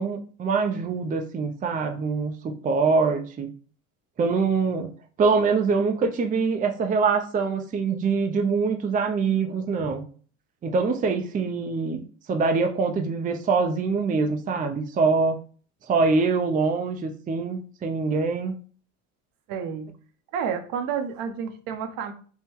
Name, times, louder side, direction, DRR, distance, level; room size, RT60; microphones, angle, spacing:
voice 1, 0.0-3.5 4.2-4.9 5.2-10.0 10.6-15.4 15.9-18.6, right 4 dB, 20° right, 5 dB, 0.5 m, -24 dB
voice 2, 19.5-19.9 20.3-22.1, right 7 dB, 65° right, 7 dB, 0.8 m, -30 dB
3.6 x 2.2 x 4.4 m, 0.41 s
supercardioid pair, 95°, 37 cm